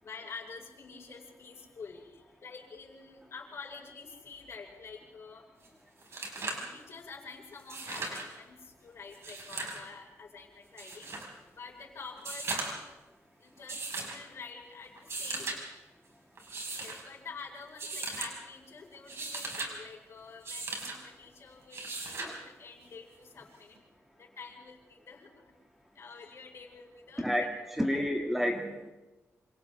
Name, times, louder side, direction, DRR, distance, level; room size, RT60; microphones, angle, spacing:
voice 1, 0.0-5.5 6.4-11.1 11.5-12.8 13.4-15.6 16.7-23.8 24.1-25.5 25.9-27.5 27.9-28.1, left 4 dB, 55° left, 1 dB, 4.9 m, -48 dB
sound 1, 5.6-5.7 6.0-6.7 7.6-8.3 9.1-9.8 10.8-11.3 12.2-12.9 13.7-14.2 15.0-15.6 16.4-17.0 17.8-18.3 18.9-19.7 20.4-21.0 21.7-22.3 23.7-23.8, right 3 dB, 55° right, 5.1 m, -37 dB
voice 2, 27.2-28.9, equal, 5° right, 1 dB, 2.3 m, -30 dB
27.0 x 27.0 x 3.6 m, 1.1 s
wide cardioid pair, 115°, 5 cm